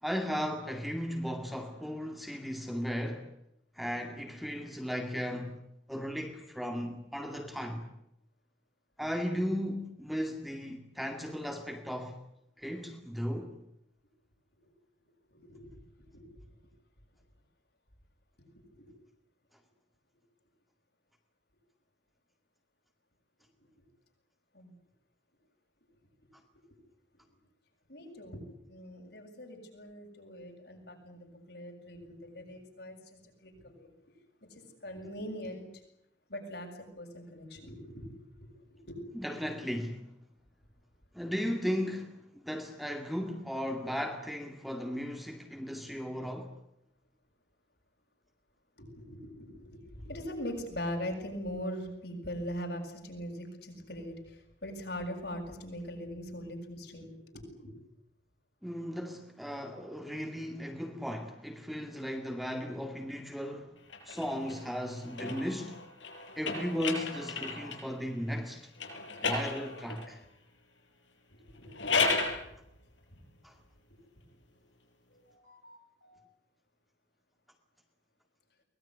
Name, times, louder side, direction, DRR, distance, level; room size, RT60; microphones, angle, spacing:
voice 1, 0.0-3.3 3.7-5.6 5.9-7.9 9.0-12.2 12.6-13.5 39.1-40.1 41.1-46.5 58.6-63.7 64.1-65.8 66.4-68.7 69.2-70.2 73.4-73.5, equal, ahead, 2.3 m, -36 dB
voice 2, 15.3-16.5 18.4-18.9 24.5-24.7 27.9-28.4 28.7-33.9 34.5-35.8 36.3-39.1 48.8-57.7 71.3-72.0 75.1-76.2, equal, 60° left, 7.2 m, -42 dB
sound 1, 63.9-67.9 68.8-70.1 71.6-72.4, left 4 dB, 80° left, 6.9 m, -34 dB
23.5 x 20.5 x 9.8 m
head